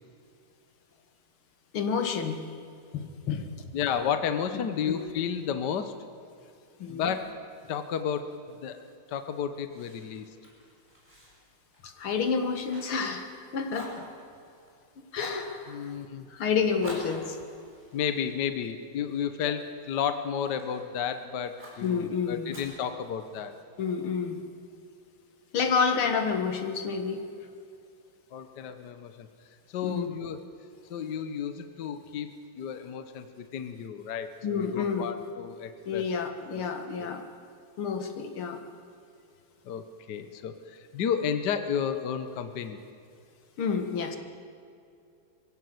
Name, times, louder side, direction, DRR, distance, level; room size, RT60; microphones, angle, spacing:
voice 1, 1.7-2.4 2.9-3.7 4.5-5.1 6.8-7.0 11.8-13.9 15.1-16.0 16.3-17.4 19.4-19.5 21.8-22.6 23.8-24.4 25.5-27.2 29.8-30.1 34.4-35.1 35.9-37.2 37.8-38.6 43.6-44.2, left 6 dB, 80° left, 6 dB, 2.4 m, -29 dB
voice 2, 3.7-5.9 6.9-7.3 7.7-8.3 8.6-8.8 9.1-10.3 15.7-16.3 17.9-23.5 28.3-29.3 29.7-30.4 30.9-36.0 36.5-36.6 37.0-37.1 39.6-42.8, left 8 dB, 60° left, 9 dB, 1.5 m, -32 dB
Fire, 9.7-13.4 13.7-14.7 15.1-15.5 16.8-19.2 19.7-20.9 21.6-21.9 22.5-23.6, equal, 20° right, 6.8 m, -47 dB
23.0 x 16.0 x 7.9 m, 2.5 s
omnidirectional pair, 2.3 m